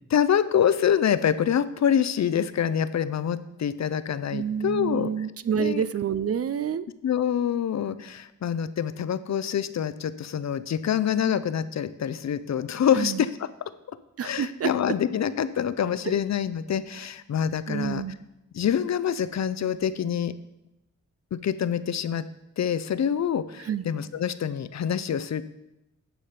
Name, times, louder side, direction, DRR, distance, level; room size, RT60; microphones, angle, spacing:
voice 1, 0.1-5.1 5.5-5.8 7.0-13.5 13.9-14.0 14.2-18.0 18.5-20.3 21.3-22.3 22.6-25.4, left 8 dB, 55° left, 14 dB, 0.5 m, -26 dB
voice 2, 4.3-6.9 12.9-13.2 14.2-14.9 17.7-18.2 23.6-23.8, right 8 dB, 45° right, 15 dB, 0.4 m, -28 dB
10.0 x 5.0 x 5.7 m, 0.89 s
cardioid pair, 75°, 33 cm